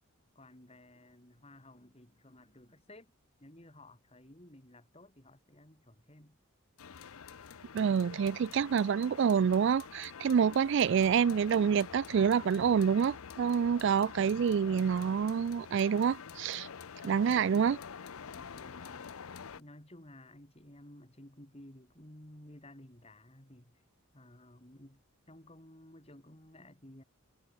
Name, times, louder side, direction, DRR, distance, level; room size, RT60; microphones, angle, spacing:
voice 1, 0.3-3.1 3.4-6.4 17.0-17.6 18.2-19.2 19.6-23.8 24.1-27.0, left 1 dB, 30° left, 3.4 m, -55 dB
sound 1, 6.8-19.6, left 6 dB, 85° left, 0.7 m, -47 dB
voice 2, 7.7-16.7 17.0-17.8, right 7 dB, 60° right, 0.3 m, -27 dB
head